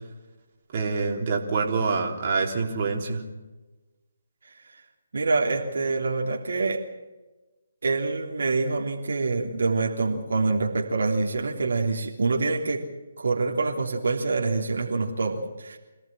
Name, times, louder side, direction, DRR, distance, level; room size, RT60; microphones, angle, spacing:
voice 1, 0.7-3.2, right 4 dB, 40° right, 1 dB, 3.6 m, -26 dB
voice 2, 5.1-6.8 7.8-12.8 13.2-15.8, right 3 dB, 65° right, 1 dB, 3.3 m, -26 dB
27.0 x 17.0 x 7.5 m, 1.1 s
figure-of-eight pair, 145°, 0 cm